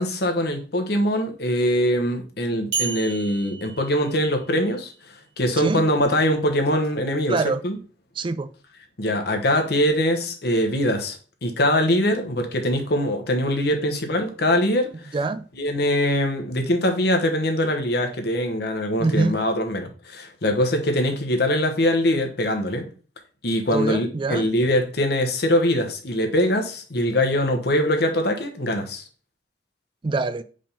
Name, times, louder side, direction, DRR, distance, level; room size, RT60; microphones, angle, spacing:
voice 1, 0.0-4.9 5.4-7.8 9.0-15.1 15.6-22.9 23.4-29.0, left 1 dB, 60° left, 1.1 m, -22 dB
sound 1, 2.7-4.8, right 6 dB, 75° right, 1.6 m, -32 dB
voice 2, 5.6-5.9 7.3-7.6 8.2-8.6 15.1-15.5 19.0-19.4 23.7-24.5 30.0-30.4, right 3 dB, 30° right, 0.3 m, -24 dB
5.1 x 3.6 x 5.5 m
head